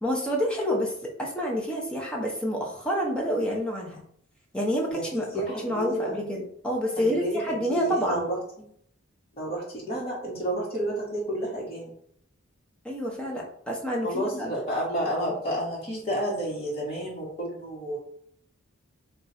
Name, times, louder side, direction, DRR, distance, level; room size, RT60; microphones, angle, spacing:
voice 1, 0.0-4.0 4.5-5.2 5.6-8.2 12.8-14.5, equal, 5° left, -2 dB, 0.7 m, -28 dB
voice 2, 4.9-6.2 7.0-8.4 9.3-11.9 14.0-18.0, right 1 dB, 30° left, -6 dB, 1.3 m, -30 dB
3.0 x 2.4 x 4.0 m, 0.65 s
head